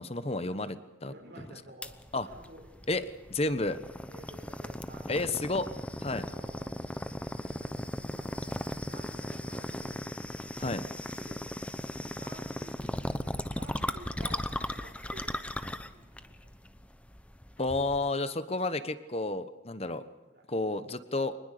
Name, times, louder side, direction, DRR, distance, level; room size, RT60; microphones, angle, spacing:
voice 1, 0.0-1.1 2.1-2.3 2.9-3.8 5.1-5.7 6.0-6.2 10.6-10.8 17.6-20.0 20.5-21.4, left 2 dB, 35° left, 12 dB, 1.2 m, -31 dB
voice 2, 1.0-2.0 2.2-2.9 4.1-5.5 6.1-6.7 7.4-10.1 11.2-11.5 12.1-13.0 13.5-14.4 14.7-16.5 19.7-20.4, right 1 dB, 60° right, -1 dB, 4.1 m, -52 dB
sound 1, 1.8-18.1, left 1 dB, 5° left, 0.9 m, -37 dB
26.0 x 20.0 x 6.8 m, 1.1 s
head